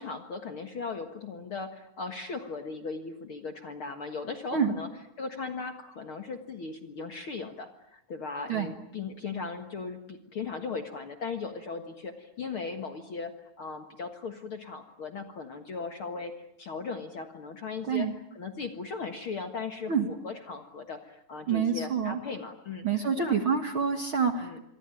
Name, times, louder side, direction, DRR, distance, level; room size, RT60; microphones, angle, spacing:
voice 1, 0.0-4.9 5.2-18.1 18.4-23.4 24.4-24.6, left 4 dB, 50° left, 6 dB, 1.8 m, -38 dB
voice 2, 21.5-22.2 22.8-24.6, right 6 dB, 45° right, 6 dB, 1.8 m, -27 dB
27.0 x 23.0 x 9.1 m, 0.81 s
omnidirectional pair, 4.1 m